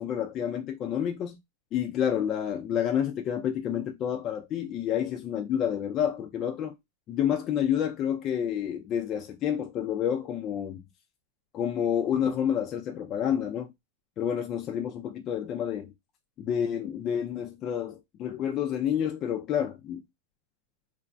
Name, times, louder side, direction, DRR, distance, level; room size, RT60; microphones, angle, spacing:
voice 1, 0.0-1.4 1.7-6.8 7.1-10.8 11.5-13.7 14.2-15.9 16.4-20.0, left 9 dB, 30° left, 0.3 m, -29 dB
3.1 x 2.1 x 2.5 m
supercardioid pair, 160°, 0 cm